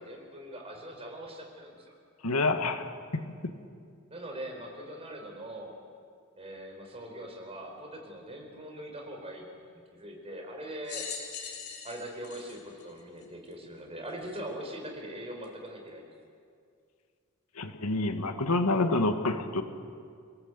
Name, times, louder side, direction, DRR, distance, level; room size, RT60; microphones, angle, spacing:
voice 1, 0.0-1.9 4.1-5.7 6.4-9.4 9.7-11.1 11.8-16.0, right 1 dB, 25° right, 2 dB, 4.6 m, -42 dB
voice 2, 2.2-3.5 17.6-19.6, left 2 dB, 90° left, 7 dB, 1.8 m, -28 dB
sound 1, 10.8-13.5 14.2-14.3 15.4-15.5, left 6 dB, 70° left, 5.0 m, -41 dB
28.5 x 18.0 x 8.2 m, 2.3 s
head